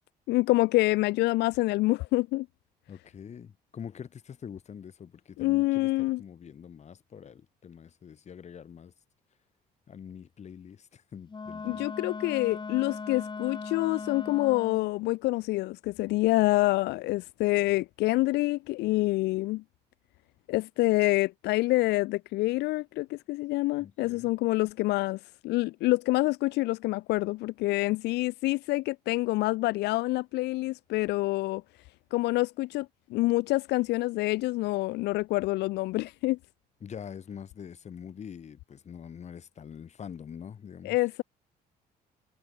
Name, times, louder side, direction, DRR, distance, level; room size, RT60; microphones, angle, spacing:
voice 1, 0.3-2.5 5.4-6.2 11.6-19.6 20.5-31.6 32.1-36.4 40.8-41.2, left 20 dB, 80° left, 0.5 m, -27 dB
voice 2, 2.9-5.9 6.2-8.9 9.9-11.9 17.6-17.7 23.8-24.3 36.8-41.0, left 7 dB, 40° left, 3.7 m, -44 dB
Wind instrument woodwind instrument, 11.3-14.9, left 4 dB, 25° left, 5.6 m, -38 dB
cardioid pair, 110°, 17 cm